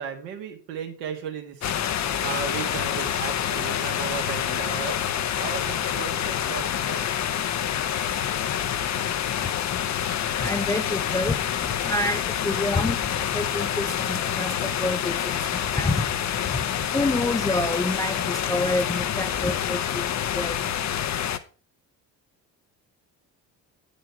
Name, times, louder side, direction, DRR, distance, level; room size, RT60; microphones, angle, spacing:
voice 1, 0.0-1.6 2.2-5.0 5.4-7.2, right 7 dB, 70° right, 1.8 m, -35 dB
sound 1, 1.6-21.4, left 9 dB, 35° left, 0.8 m, -27 dB
voice 2, 9.3-21.3, left 2 dB, 10° left, 0.3 m, -29 dB
9.2 x 5.1 x 5.6 m
figure-of-eight pair, 50°, 50 cm